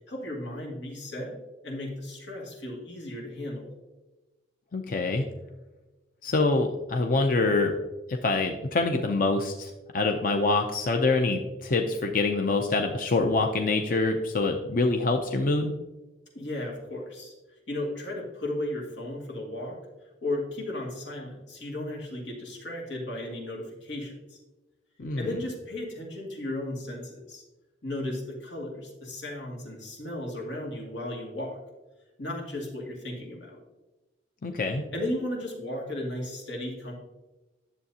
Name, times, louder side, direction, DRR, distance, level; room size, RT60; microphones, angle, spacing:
voice 1, 0.1-1.4 1.6-3.7 16.3-17.3 17.7-19.8 20.2-24.4 25.2-27.4 27.8-31.6 32.2-33.6 34.9-36.9, left 1 dB, 90° left, -2 dB, 2.2 m, -35 dB
voice 2, 4.7-5.2 6.2-7.7 8.1-15.7 25.0-25.3 34.4-34.8, left 3 dB, 45° left, 4 dB, 0.5 m, -25 dB
10.5 x 7.3 x 2.8 m, 1.1 s
head